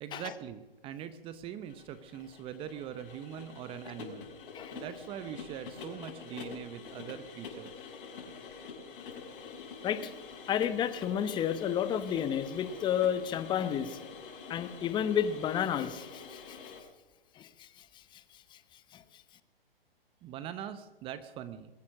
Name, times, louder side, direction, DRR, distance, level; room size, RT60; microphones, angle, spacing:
voice 1, 0.0-4.3 4.7-7.7 20.2-21.7, right 9 dB, 20° right, 13 dB, 0.7 m, -42 dB
sound 1, 1.6-16.8, left 5 dB, 60° left, 6.0 m, -46 dB
voice 2, 10.5-14.0 14.5-16.6 17.4-17.7 18.9-19.0, left 9 dB, 15° left, 12 dB, 0.9 m, -31 dB
22.0 x 9.6 x 6.3 m, 1.1 s
hypercardioid pair, 135°, 29 cm